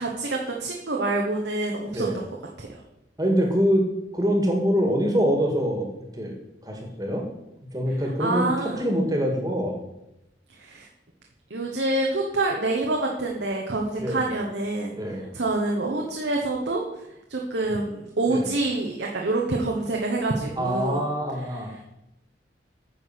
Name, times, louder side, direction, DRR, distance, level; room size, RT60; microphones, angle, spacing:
voice 1, 0.0-2.3 2.6-2.8 8.2-8.8 10.6-10.9 11.5-14.9 15.3-16.8 17.3-21.0, right 2 dB, 75° right, 0 dB, 1.3 m, -26 dB
voice 2, 3.2-3.8 4.1-6.4 6.7-7.3 7.7-9.8 14.0-14.3 14.9-15.3 18.3-18.5 20.6-21.7, equal, 20° right, 2 dB, 1.9 m, -24 dB
9.8 x 6.4 x 5.9 m, 0.86 s
head